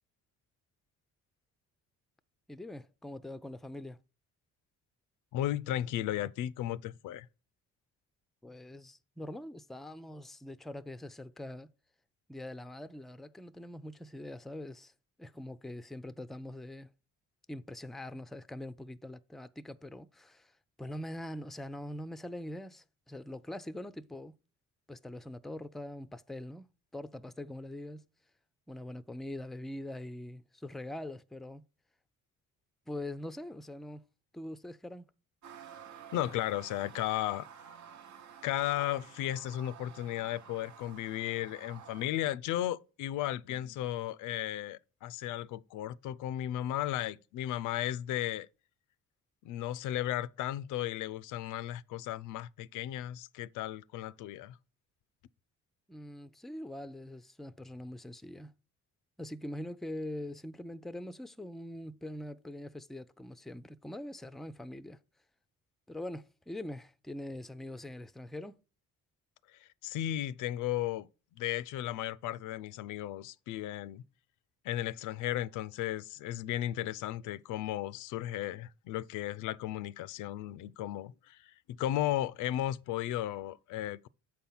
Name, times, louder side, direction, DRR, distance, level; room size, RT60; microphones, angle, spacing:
voice 1, 2.5-4.0 8.4-11.7 12.3-14.9 15.2-16.9 17.5-24.4 24.9-28.0 28.7-31.6 32.9-34.0 34.3-35.1 55.9-58.5 59.2-65.0 65.9-68.6, left 1 dB, ahead, 0.4 m, -43 dB
voice 2, 5.3-7.3 36.1-37.5 38.4-48.5 49.4-54.6 69.5-71.1 71.4-74.0 74.6-84.1, left 13 dB, 85° left, 0.5 m, -35 dB
sound 1, 35.4-42.1, right 8 dB, 65° right, 1.0 m, -52 dB
7.6 x 4.4 x 5.4 m
cardioid pair, 90°, 30 cm